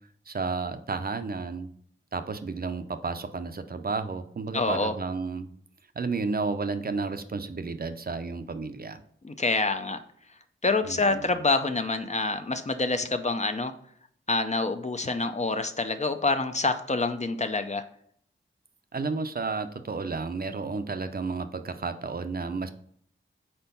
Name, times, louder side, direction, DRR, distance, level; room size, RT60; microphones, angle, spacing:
voice 1, 0.3-1.7 2.1-5.5 6.0-9.0 10.9-11.3 18.9-22.7, right 4 dB, 45° right, 9 dB, 0.5 m, -32 dB
voice 2, 4.5-4.9 9.2-10.0 10.6-13.7 14.3-17.8, left 3 dB, 35° left, 8 dB, 0.5 m, -27 dB
4.5 x 4.3 x 5.3 m, 0.63 s
wide cardioid pair, 70°, 21 cm